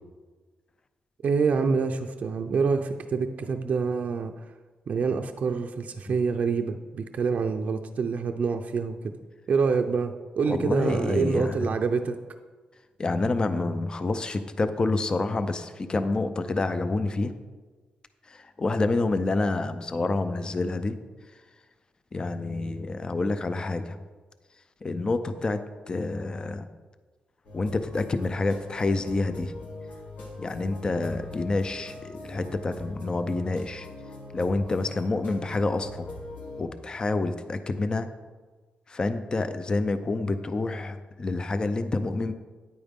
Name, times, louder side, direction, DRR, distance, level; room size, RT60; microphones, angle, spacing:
voice 1, 1.2-4.4 4.9-9.1 9.5-12.2, right 5 dB, 55° right, 5 dB, 0.5 m, -26 dB
voice 2, 10.5-11.6 13.0-17.3 18.3-21.0 22.1-24.0 24.8-25.6 25.9-26.7 27.5-29.5 30.4-33.9 34.3-36.1 36.6-38.1 38.9-42.3, left 3 dB, 30° left, 10 dB, 0.5 m, -28 dB
sound 1, 27.4-36.6, left 2 dB, 75° left, 3.0 m, -42 dB
9.7 x 8.7 x 3.6 m, 1.4 s
cardioid pair, 120°, 3 cm